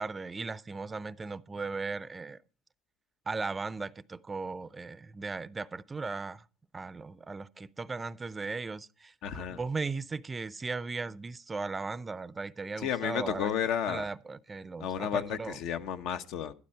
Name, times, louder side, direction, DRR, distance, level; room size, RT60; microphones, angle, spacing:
voice 1, 0.0-2.4 3.3-6.4 6.7-13.5 13.9-15.6, right 4 dB, 20° right, 0.5 m, -37 dB
voice 2, 9.2-9.6 12.8-14.0 14.8-16.5, left 9 dB, 70° left, 1.1 m, -32 dB
12.0 x 11.5 x 4.6 m
supercardioid pair, 90°, 0 cm